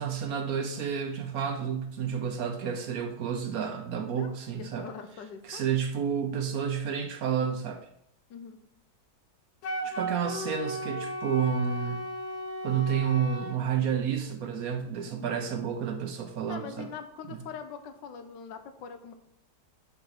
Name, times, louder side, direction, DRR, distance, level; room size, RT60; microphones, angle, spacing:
voice 1, 0.0-4.9 5.4-7.9 9.8-12.0 12.6-16.9 17.3-17.4, right 7 dB, 65° right, 6 dB, 1.0 m, -30 dB
voice 2, 4.1-5.6 8.3-8.6 15.0-15.3 16.5-19.1, left 6 dB, 90° left, 8 dB, 1.4 m, -43 dB
Wind instrument woodwind instrument, 9.6-13.6, equal, 65° left, 1.3 m, -35 dB
5.9 x 4.4 x 5.7 m, 0.76 s
omnidirectional pair, 1.9 m